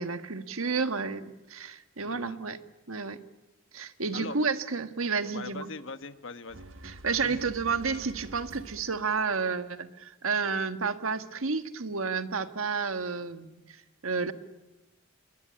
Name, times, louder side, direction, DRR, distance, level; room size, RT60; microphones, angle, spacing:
voice 1, 0.0-2.6 2.9-3.2 3.7-5.7 6.8-14.3, right 5 dB, 85° right, 9 dB, 1.5 m, -31 dB
voice 2, 2.0-2.4 4.1-4.4 5.2-6.7 7.2-7.5, left 3 dB, 70° left, 11 dB, 1.3 m, -41 dB
sound 1, 6.5-9.2, right 1 dB, 70° right, 1.4 m, -47 dB
27.5 x 22.5 x 8.8 m, 1.0 s
head